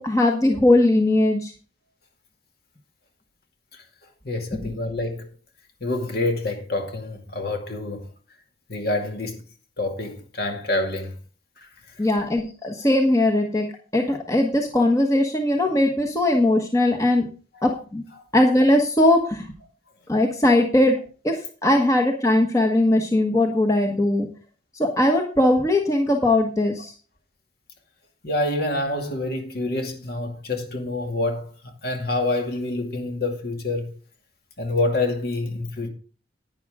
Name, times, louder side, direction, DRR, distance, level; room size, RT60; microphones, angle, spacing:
voice 1, 0.0-1.5 4.6-4.7 12.0-13.7 13.9-17.3 17.6-18.0 18.3-19.5 20.1-21.0 21.2-24.3 24.7-26.9, left 1 dB, 15° left, 1.3 m, -20 dB
voice 2, 4.2-5.3 5.8-8.1 8.7-9.4 9.8-11.1 11.6-11.7 28.2-31.5 31.8-33.9 34.6-35.9, left 2 dB, 55° left, 2.3 m, -27 dB
11.0 x 9.7 x 3.6 m
head